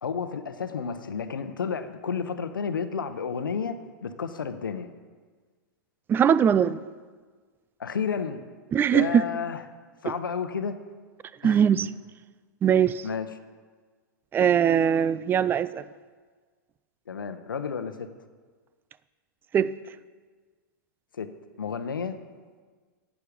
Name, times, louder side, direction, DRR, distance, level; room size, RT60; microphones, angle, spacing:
voice 1, 0.0-4.9 7.8-8.4 8.9-9.7 10.0-10.8 11.4-11.6 13.0-13.3 17.1-18.1 21.1-21.3 21.6-22.2, left 6 dB, 90° left, 10 dB, 0.8 m, -31 dB
voice 2, 6.1-6.8 8.7-9.2 10.1-10.2 11.4-11.9 12.6-13.0 14.3-15.8 19.5-19.7, right 8 dB, 20° right, 18 dB, 0.3 m, -21 dB
11.0 x 8.5 x 5.1 m, 1.5 s
hypercardioid pair, 115°, 11 cm